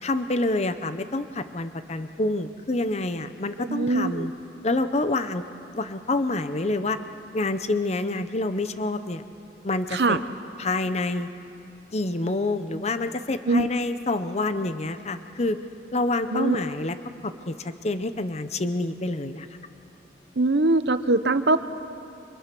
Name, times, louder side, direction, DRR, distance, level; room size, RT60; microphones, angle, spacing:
voice 1, 0.0-4.3 4.6-5.4 5.7-7.0 7.3-9.2 9.6-10.2 10.6-11.3 11.9-15.6 15.9-17.0 17.2-19.5, left 2 dB, 40° left, 10 dB, 0.8 m, -27 dB
voice 2, 3.6-4.3 9.9-10.2 13.5-13.7 16.3-16.6 20.4-21.6, right 2 dB, 65° right, 11 dB, 0.9 m, -22 dB
30.0 x 26.0 x 6.1 m, 2.6 s
head